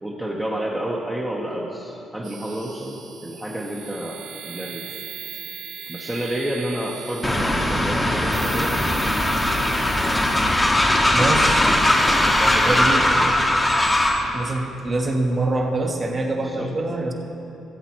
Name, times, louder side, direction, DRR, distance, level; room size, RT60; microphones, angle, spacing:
voice 1, 0.0-4.8 5.9-9.1 12.3-13.4 16.4-16.7, right 1 dB, 10° right, -4 dB, 0.9 m, -30 dB
sound 1, 2.2-12.8, right 7 dB, 80° right, 0.7 m, -39 dB
Train, 7.2-14.3, left 1 dB, 15° left, 1.0 m, -19 dB
voice 2, 11.1-11.7 12.5-13.0 14.3-17.1, right 2 dB, 35° right, 2 dB, 1.2 m, -24 dB
15.5 x 8.1 x 3.0 m, 2.8 s
cardioid pair, 90°, 0 cm